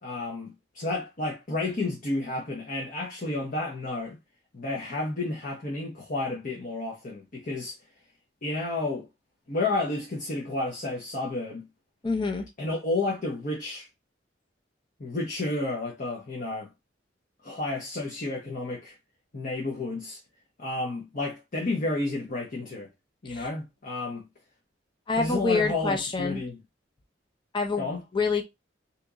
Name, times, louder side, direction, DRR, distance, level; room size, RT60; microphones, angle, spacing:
voice 1, 0.0-4.2 4.5-7.8 8.4-9.1 9.5-11.7 12.6-13.9 15.0-16.7 17.4-19.0 19.3-20.2 20.6-22.9 23.2-24.2 25.2-26.6 27.8-28.0, left 2 dB, 45° left, 0.8 m, -31 dB
voice 2, 12.0-12.5 23.3-23.4 25.1-26.4 27.5-28.4, left 4 dB, 25° left, 0.4 m, -27 dB
2.9 x 2.5 x 3.5 m
head